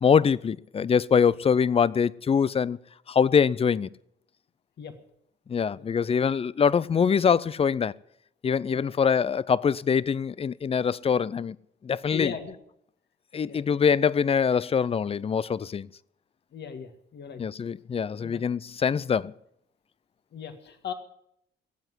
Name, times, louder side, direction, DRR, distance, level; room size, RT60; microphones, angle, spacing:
voice 1, 0.0-2.8 3.1-3.9 5.5-7.9 8.4-11.6 11.8-12.3 13.3-15.9 17.4-19.3, left 6 dB, 30° left, 0.5 m, -24 dB
voice 2, 12.1-12.6 13.4-13.6 16.5-17.4 18.2-18.4 20.3-20.9, left 7 dB, 60° left, 1.9 m, -38 dB
16.5 x 8.0 x 9.7 m
cardioid pair, 90°, 20 cm